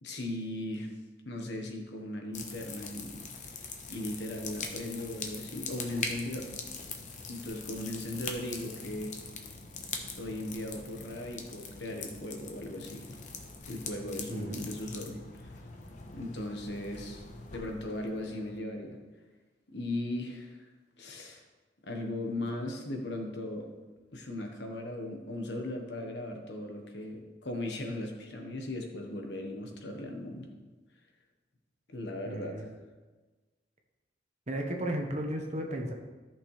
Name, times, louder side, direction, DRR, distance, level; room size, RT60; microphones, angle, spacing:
voice 1, 0.0-0.9 1.2-3.2 3.9-6.5 7.3-9.1 10.2-13.1 13.7-15.5 16.1-17.2 17.5-19.0 19.7-20.6 21.0-21.4 21.8-23.7 24.1-30.5 31.9-32.7, left 1 dB, 70° left, 3 dB, 1.3 m, -38 dB
sound 1, 2.3-18.6, left 4 dB, 40° left, 0.9 m, -42 dB
voice 2, 14.3-14.7 32.3-32.7 34.5-35.9, right 1 dB, 40° right, 2 dB, 1.2 m, -34 dB
13.5 x 6.1 x 3.3 m, 1.3 s
head